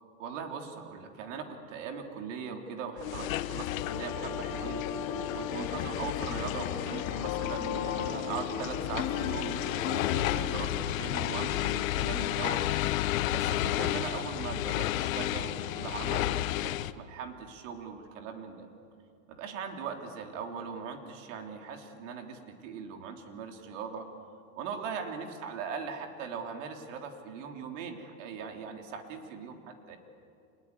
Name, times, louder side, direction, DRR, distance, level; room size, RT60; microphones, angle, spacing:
voice 1, 0.2-4.8 5.3-12.6 13.3-18.7 19.3-24.1 24.6-30.0, right 6 dB, 60° right, 4 dB, 3.5 m, -40 dB
sound 1, 3.0-16.9, left 14 dB, 70° left, 1.0 m, -32 dB
sound 2, 3.8-10.7, left 7 dB, 40° left, 2.0 m, -36 dB
27.5 x 20.5 x 9.8 m, 2.5 s
supercardioid pair, 160°, 42 cm